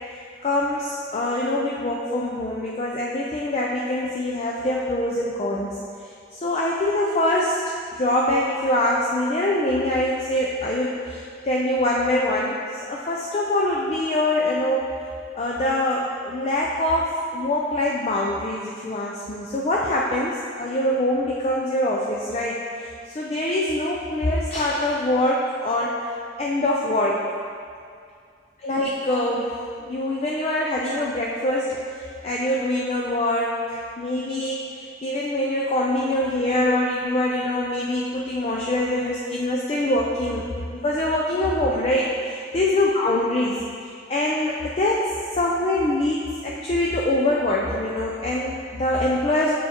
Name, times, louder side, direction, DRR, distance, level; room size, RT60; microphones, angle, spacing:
voice 1, 0.4-5.8 6.3-14.9 15.4-22.9 23.1-26.0 26.4-27.3 28.6-29.6 29.9-43.6 44.1-49.6, left 1 dB, 35° left, -3 dB, 0.4 m, -24 dB
7.3 x 4.7 x 2.9 m, 2.2 s
head